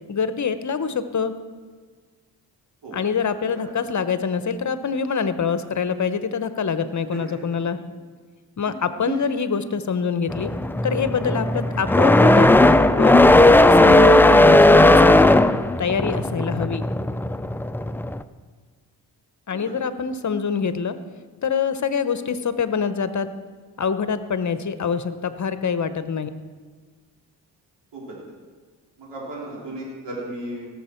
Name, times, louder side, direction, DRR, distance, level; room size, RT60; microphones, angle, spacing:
voice 1, 0.1-1.3 2.9-7.8 8.6-10.5 10.8-12.5 13.0-13.3 13.7-15.4 15.8-16.8 19.5-21.0 21.4-23.3 23.8-26.3, left 6 dB, 45° left, 12 dB, 0.9 m, -25 dB
sound 1, 10.3-18.2, left 1 dB, 5° left, 0.3 m, -15 dB
voice 2, 29.0-30.7, right 2 dB, 80° right, -4 dB, 3.3 m, -34 dB
18.0 x 7.2 x 4.4 m, 1.5 s
cardioid pair, 60°, 42 cm